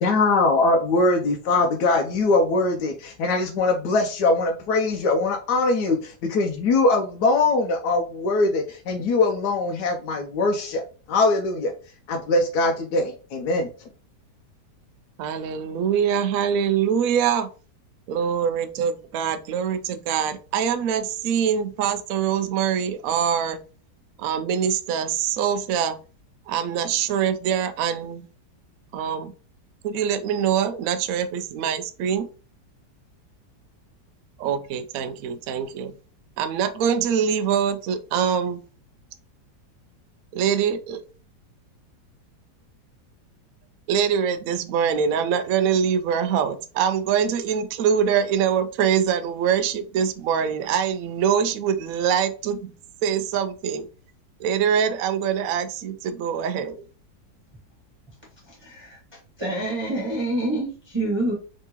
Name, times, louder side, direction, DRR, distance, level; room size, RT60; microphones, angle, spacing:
voice 1, 0.0-10.8 11.1-11.7 12.1-13.7, left 3 dB, 75° left, 1.1 m, -22 dB
voice 2, 15.2-17.5 18.1-23.6 24.2-26.0 26.5-28.2 28.9-29.3 29.8-32.3 34.4-35.9 36.4-38.6 40.3-41.0 43.9-52.7 53.0-53.9 54.4-56.7, right 8 dB, 70° right, 0.8 m, -24 dB
voice 3, 58.4-59.0 59.4-61.3, right 2 dB, 15° right, 1.2 m, -27 dB
3.7 x 3.6 x 2.9 m
omnidirectional pair, 1.9 m